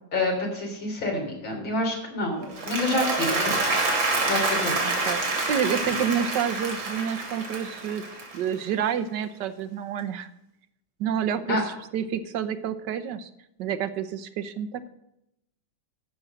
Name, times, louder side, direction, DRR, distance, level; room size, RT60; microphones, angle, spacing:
voice 1, 0.1-3.8 4.2-5.3 11.5-11.6, left 2 dB, 80° left, 0 dB, 4.1 m, -28 dB
Applause, 2.4-8.7, right 3 dB, 85° right, 3.6 m, -27 dB
voice 2, 4.8-8.0 8.3-10.3 11.0-13.3 13.6-14.9, right 8 dB, 70° right, 12 dB, 1.3 m, -29 dB
13.5 x 6.3 x 6.6 m, 0.83 s
omnidirectional pair, 2.1 m